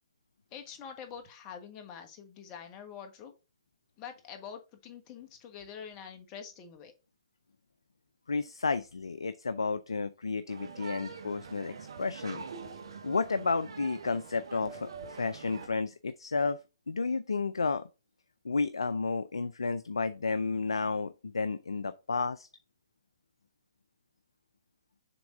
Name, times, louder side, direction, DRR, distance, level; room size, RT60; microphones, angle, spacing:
voice 1, 0.5-3.3 4.0-6.9, left 7 dB, 30° left, 1.3 m, -45 dB
voice 2, 8.3-12.4 13.0-16.6 16.9-17.9 18.4-22.5, left 4 dB, 85° left, 0.4 m, -32 dB
sound 1, 10.5-15.7, right 5 dB, 70° right, 1.1 m, -44 dB
6.9 x 3.6 x 3.8 m
hypercardioid pair, 130°, 3 cm